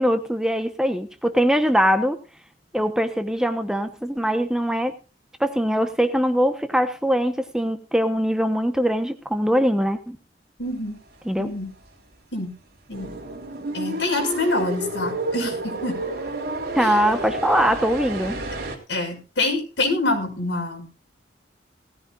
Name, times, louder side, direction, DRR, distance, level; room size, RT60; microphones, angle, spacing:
voice 1, 0.0-2.2 2.7-5.0 5.4-10.2 11.2-11.5 16.7-18.4, equal, 5° right, 8 dB, 1.0 m, -22 dB
voice 2, 10.6-11.0 11.4-11.7 12.3-12.5 12.9-13.1 13.7-16.0 16.8-17.0 18.9-21.0, left 2 dB, 75° left, 2 dB, 5.8 m, -26 dB
sound 1, 12.9-18.8, right 2 dB, 55° right, 3.6 m, -30 dB
18.5 x 14.5 x 2.5 m, 0.31 s
head